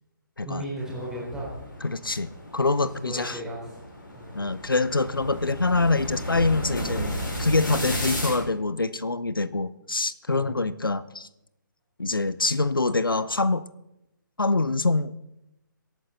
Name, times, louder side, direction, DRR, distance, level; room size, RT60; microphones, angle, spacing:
voice 1, 0.4-1.5 3.0-3.8 4.1-4.4 10.3-10.6, right 1 dB, 5° right, -6 dB, 3.9 m, -35 dB
sound 1, 0.8-8.4, equal, 70° left, 5.2 m, -34 dB
voice 2, 1.8-3.4 4.3-11.3 12.0-13.7 14.4-15.1, left 3 dB, 90° left, 17 dB, 0.6 m, -25 dB
24.5 x 9.0 x 3.9 m, 0.89 s
figure-of-eight pair, 140°, 11 cm